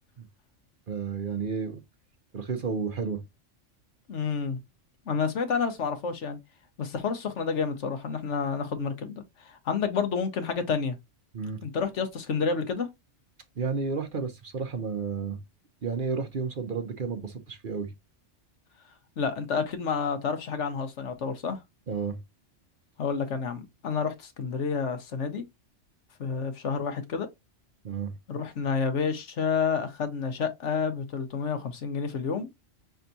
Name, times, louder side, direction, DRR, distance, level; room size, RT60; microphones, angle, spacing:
voice 1, 0.9-1.8 2.3-3.2 11.3-11.6 13.6-15.4 15.8-17.9 21.9-22.2 27.8-28.1, right 5 dB, 50° right, 0.9 m, -31 dB
voice 2, 4.1-4.6 5.1-6.4 6.8-11.0 11.6-12.9 19.2-21.6 23.0-25.4 26.2-27.3 28.3-32.5, left 5 dB, 70° left, 1.3 m, -29 dB
5.7 x 3.5 x 2.6 m
omnidirectional pair, 1.3 m